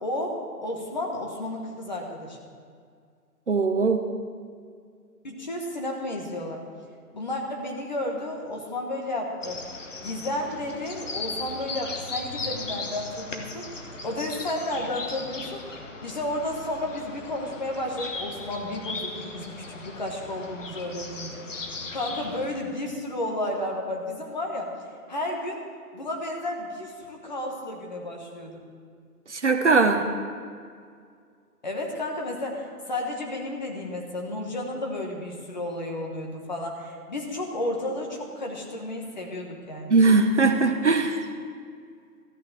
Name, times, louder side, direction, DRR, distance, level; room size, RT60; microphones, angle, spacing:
voice 1, 0.0-2.4 5.2-6.6 7.1-9.6 10.0-15.6 16.0-21.7 21.9-24.7 25.1-25.6 25.9-28.6 31.6-40.0, left 1 dB, 30° left, 1 dB, 1.3 m, -32 dB
voice 2, 3.5-4.0 29.3-30.0 39.9-41.2, right 3 dB, 45° right, 6 dB, 0.8 m, -20 dB
sound 1, 9.4-22.5, left 3 dB, 50° left, 1.3 m, -37 dB
13.5 x 6.2 x 8.8 m, 2.1 s
figure-of-eight pair, 160°, 47 cm